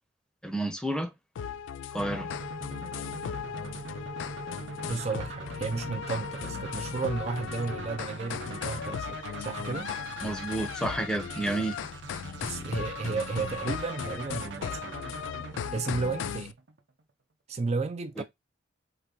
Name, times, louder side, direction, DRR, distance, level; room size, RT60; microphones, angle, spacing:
voice 1, 0.4-1.1 1.9-2.3 10.2-11.8 18.2-18.3, right 2 dB, 5° left, 0.8 m, -30 dB
sound 1, 1.4-16.5, left 8 dB, 85° left, 0.3 m, -37 dB
sound 2, 2.0-16.9, right 3 dB, 70° right, 0.7 m, -42 dB
voice 2, 4.9-9.9 11.4-11.6 12.4-15.0 15.7-16.6 17.5-18.2, right 4 dB, 35° right, 0.5 m, -33 dB
4.1 x 3.3 x 3.8 m
head